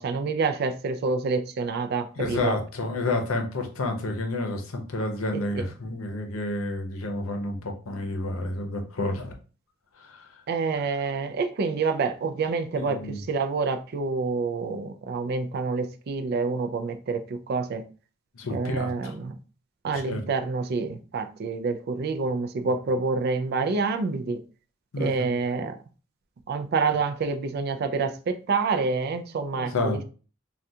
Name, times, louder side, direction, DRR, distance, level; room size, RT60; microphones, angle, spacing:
voice 1, 0.0-2.5 5.3-5.7 10.5-17.8 18.5-19.4 19.8-24.4 25.0-25.8 26.5-30.0, right 4 dB, 50° right, 0.3 m, -27 dB
voice 2, 2.2-9.3 10.0-10.3 12.7-13.2 18.4-19.1 19.9-20.2 22.6-22.7 24.9-25.3 29.6-30.0, left 2 dB, 85° left, 0.7 m, -30 dB
3.5 x 2.3 x 2.7 m
head